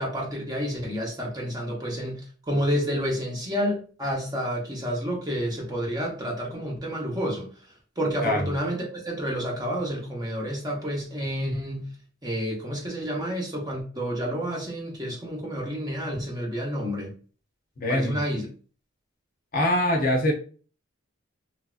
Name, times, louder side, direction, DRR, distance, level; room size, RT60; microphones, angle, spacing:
voice 1, 0.0-7.5 8.0-11.9 12.2-17.1 17.9-18.5, equal, 20° right, 0.7 m, -29 dB
voice 2, 17.8-18.2 19.5-20.3, left 1 dB, 40° left, 0.6 m, -23 dB
3.1 x 2.6 x 2.3 m
head